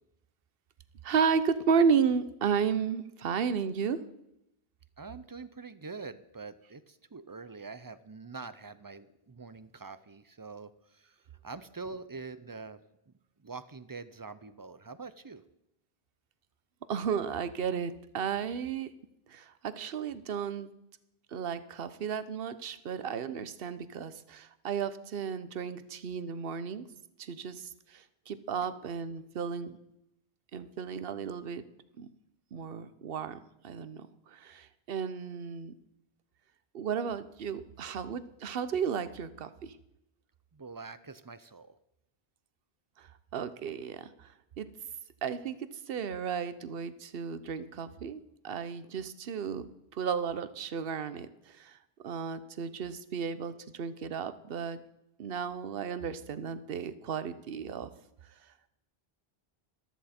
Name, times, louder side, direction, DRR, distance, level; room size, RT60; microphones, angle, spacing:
voice 1, 1.0-4.0 16.9-18.9 19.3-20.7 21.3-26.8 27.2-29.8 30.5-31.6 32.0-32.1 32.5-33.4 33.6-35.7 36.7-39.8 43.0-44.3 44.6-44.7 45.2-45.6 45.9-51.8 52.0-54.8 55.2-57.9, right 6 dB, 65° right, 13 dB, 1.0 m, -33 dB
voice 2, 5.0-11.2 11.4-12.8 13.1-13.2 13.4-15.4 40.5-41.8, right 4 dB, 30° right, 14 dB, 0.4 m, -45 dB
14.5 x 13.0 x 4.3 m, 0.85 s
omnidirectional pair, 1.0 m